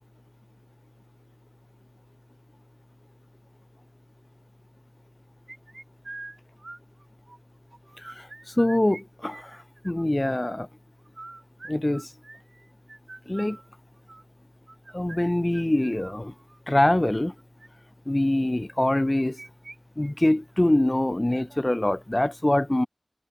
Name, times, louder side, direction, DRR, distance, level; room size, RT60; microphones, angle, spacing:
sound 1, 5.5-7.4 7.7-9.0 9.3-10.3 11.0-16.6 17.4-17.7 18.9-19.8 20.0-20.1 20.6-20.7 21.3-21.6, right 2 dB, 70° right, 3.8 m, -45 dB
voice 1, 8.0-10.7 11.7-12.1 13.3-13.6 14.9-16.3 16.7-17.3 18.1-19.4 20.0-22.9, left 1 dB, 30° left, 0.4 m, -24 dB
wide cardioid pair, 45°, 0 cm